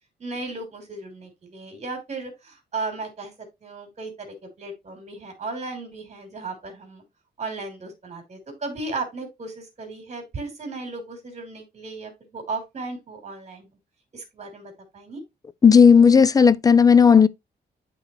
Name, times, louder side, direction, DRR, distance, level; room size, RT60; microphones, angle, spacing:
voice 1, 0.2-3.3 3.6-7.0 7.4-13.7 14.1-15.2, right 3 dB, 40° right, 3.0 m, -35 dB
voice 2, 15.6-17.3, left 6 dB, 20° left, 0.3 m, -13 dB
11.0 x 3.9 x 3.0 m
wide cardioid pair, 170°, 18 cm